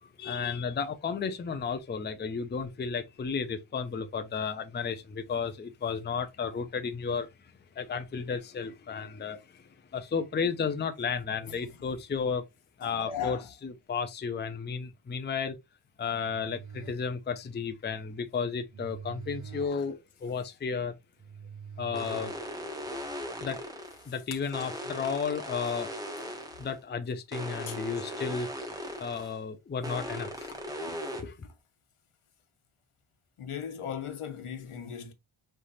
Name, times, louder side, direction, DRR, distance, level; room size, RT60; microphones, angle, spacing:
voice 1, 0.0-7.3 7.8-12.4 12.8-15.6 16.0-21.0 21.8-22.3 23.4-23.6 24.1-26.1 26.6-28.5 29.0-30.5 31.1-31.3, left 6 dB, 25° left, 0.4 m, -33 dB
voice 2, 11.4-11.9 12.8-13.5 19.7-19.8 24.0-24.5 27.7-27.8 30.5-31.2 31.4-31.5 33.4-35.1, left 8 dB, 85° left, 1.0 m, -39 dB
sound 1, 16.0-22.9, right 6 dB, 35° right, 0.8 m, -47 dB
sound 2, 21.9-24.1 24.5-26.7 27.3-29.4 29.8-31.2, equal, 5° right, 1.2 m, -38 dB
5.3 x 3.3 x 2.6 m
wide cardioid pair, 170°, 50 cm